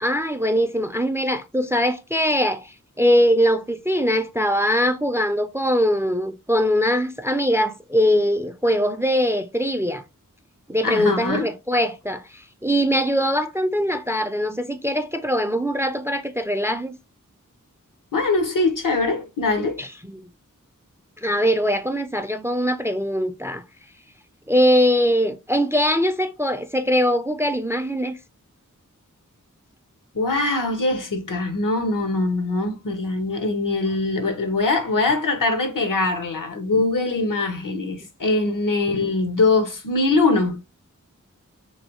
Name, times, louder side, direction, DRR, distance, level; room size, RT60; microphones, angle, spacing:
voice 1, 0.0-10.0 10.7-17.0 19.8-20.3 21.2-23.6 24.5-28.2, equal, 10° right, 0.3 m, -22 dB
voice 2, 10.8-11.5 18.1-19.8 30.1-40.6, left 3 dB, 80° left, 0.8 m, -22 dB
3.2 x 2.6 x 2.9 m
wide cardioid pair, 40°, 32 cm